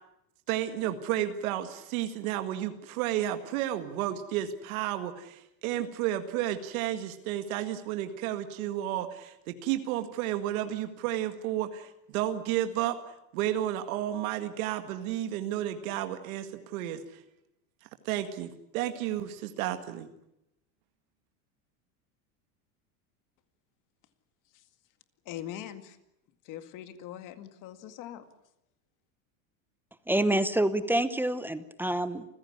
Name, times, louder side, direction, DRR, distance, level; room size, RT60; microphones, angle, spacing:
voice 1, 0.5-13.0 13.3-17.2 18.1-20.1, right 12 dB, 70° right, 8 dB, 2.0 m, -32 dB
voice 2, 25.3-26.0 26.5-28.2, left 11 dB, 45° left, 10 dB, 2.2 m, -41 dB
voice 3, 30.1-32.2, right 1 dB, 5° right, 12 dB, 0.8 m, -27 dB
28.5 x 16.0 x 9.8 m, 0.85 s
supercardioid pair, 150°, 43 cm